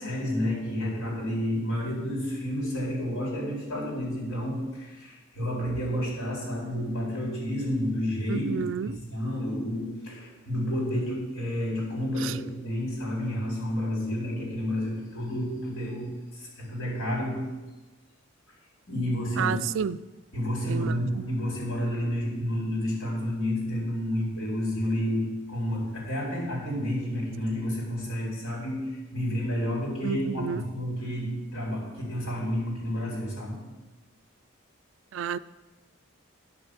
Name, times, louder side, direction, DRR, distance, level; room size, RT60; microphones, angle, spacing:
voice 1, 0.0-8.4 8.8-17.5 18.9-19.5 20.3-33.6, equal, 80° left, 4.5 m, -30 dB
voice 2, 8.3-9.0 12.2-12.4 19.4-20.0 20.7-21.2 30.0-30.6 35.1-35.4, right 7 dB, 65° right, 0.3 m, -31 dB
10.5 x 6.5 x 7.0 m
head